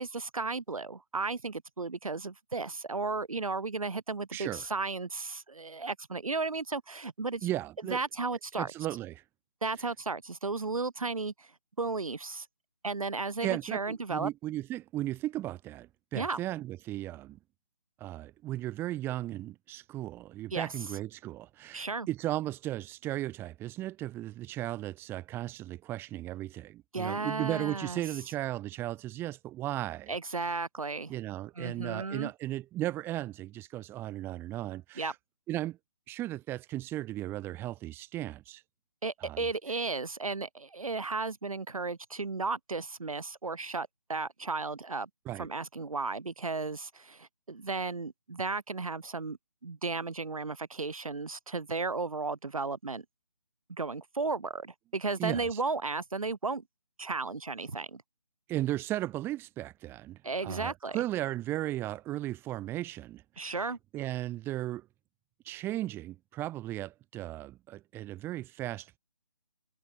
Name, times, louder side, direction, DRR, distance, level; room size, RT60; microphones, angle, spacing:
voice 1, 0.0-7.5 7.8-8.7 9.6-11.5 11.8-12.5 12.8-14.3 16.1-16.4 20.5-20.7 21.7-22.1 26.9-28.0 30.1-31.1 31.6-32.3 35.0-35.1 39.0-45.1 45.4-49.4 49.6-53.0 53.7-56.6 57.0-58.0 60.2-61.0 63.4-63.8, right 3 dB, 65° right, 3.9 m, -34 dB
voice 2, 4.3-4.7 7.4-8.0 8.6-9.2 13.4-17.4 18.0-30.1 31.1-35.1 35.5-35.8 36.1-38.6 39.2-39.5 45.2-45.5 55.2-55.5 58.5-63.6 63.9-64.9 65.4-69.0, right 15 dB, 10° right, 4.8 m, -36 dB
figure-of-eight pair, 150°, 19 cm